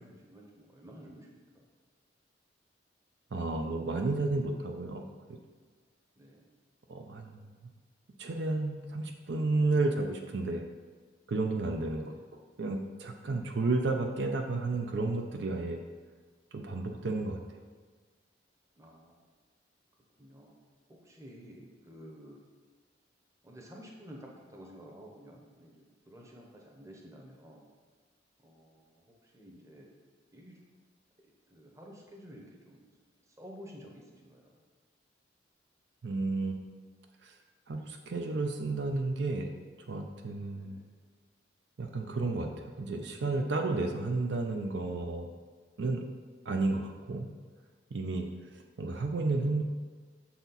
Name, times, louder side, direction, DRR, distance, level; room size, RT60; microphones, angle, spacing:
voice 1, 0.0-1.6 6.2-6.5 11.8-12.2 18.8-19.1 20.2-20.5 20.9-22.4 23.4-27.6 28.4-29.9 30.3-30.5 31.5-32.9 33.3-34.6 40.5-40.9, equal, 15° right, -1 dB, 0.8 m, -51 dB
voice 2, 3.3-5.0 6.9-7.5 8.2-10.7 11.3-12.1 12.6-15.8 16.5-17.6 36.0-36.7 37.2-37.4 37.7-39.5 39.9-40.8 41.8-45.3 45.8-46.0 46.5-47.3 47.9-49.6, right 3 dB, 65° right, 3 dB, 0.5 m, -32 dB
7.0 x 4.3 x 4.0 m, 1.5 s
head